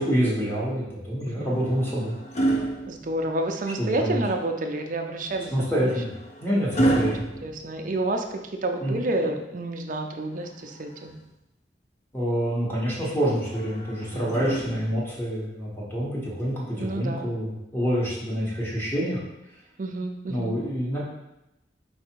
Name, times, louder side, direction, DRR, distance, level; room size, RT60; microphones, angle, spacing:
voice 1, 0.0-2.2 3.8-4.2 5.5-6.1 6.4-7.3 8.8-9.0 12.1-19.2 20.3-21.0, equal, 10° left, -6 dB, 1.3 m, -27 dB
sound 1, 1.2-3.7 5.3-8.4 10.2-11.4 13.4-15.2 16.4-16.6, right 2 dB, 40° left, 0.6 m, -31 dB
voice 2, 2.9-5.9 7.4-11.2 14.3-14.8 16.8-17.3 19.8-20.5, right 2 dB, 45° right, 4 dB, 0.5 m, -29 dB
4.8 x 2.5 x 4.5 m, 0.90 s
head